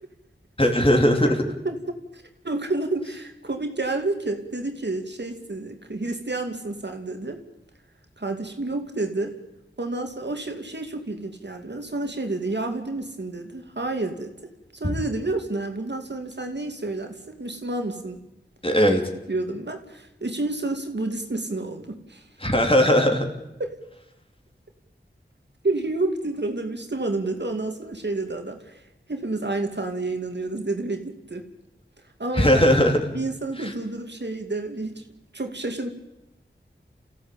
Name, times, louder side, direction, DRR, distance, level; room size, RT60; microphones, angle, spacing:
voice 1, 0.6-1.4 18.6-19.0 22.4-23.3 32.3-33.1, equal, 25° left, 3 dB, 3.6 m, -18 dB
voice 2, 1.5-7.4 8.2-9.3 9.8-14.3 14.7-18.2 18.9-19.0 19.3-22.3 23.6-23.7 25.6-28.8 29.1-31.4 32.2-32.7 33.1-35.0 35.3-35.9, right 2 dB, 60° right, 5 dB, 2.5 m, -30 dB
29.5 x 15.5 x 8.9 m, 0.96 s
wide cardioid pair, 50°, 20 cm